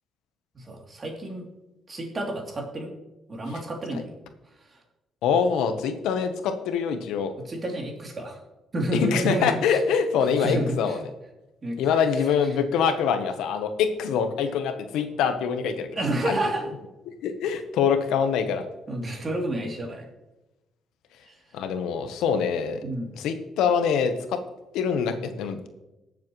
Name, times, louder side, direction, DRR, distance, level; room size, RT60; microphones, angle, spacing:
voice 1, 0.5-1.5 1.9-2.9 3.3-4.1 7.4-8.4 8.7-9.8 10.4-11.0 11.6-11.8 15.9-16.7 18.9-20.0 21.3-21.4 22.8-23.1, right 1 dB, 35° right, 1 dB, 3.0 m, -29 dB
voice 2, 5.2-7.3 8.9-11.0 11.8-15.9 16.2-16.4 17.2-18.6 21.5-22.8 23.1-24.4 24.7-25.7, left 7 dB, 90° left, 8 dB, 1.0 m, -24 dB
19.5 x 7.5 x 3.1 m, 1.0 s
cardioid pair, 90°, 0 cm